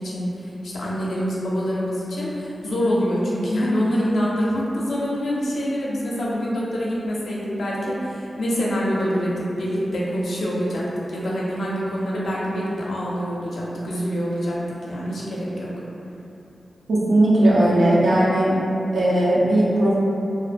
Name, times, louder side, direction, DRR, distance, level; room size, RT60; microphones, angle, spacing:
voice 1, 0.0-14.6 14.9-15.7, equal, 85° left, -6 dB, 0.5 m, -25 dB
voice 2, 16.9-18.6 18.9-19.9, right 1 dB, 90° right, -7 dB, 0.5 m, -17 dB
2.5 x 2.1 x 2.5 m, 2.8 s
cardioid pair, 50°, 0 cm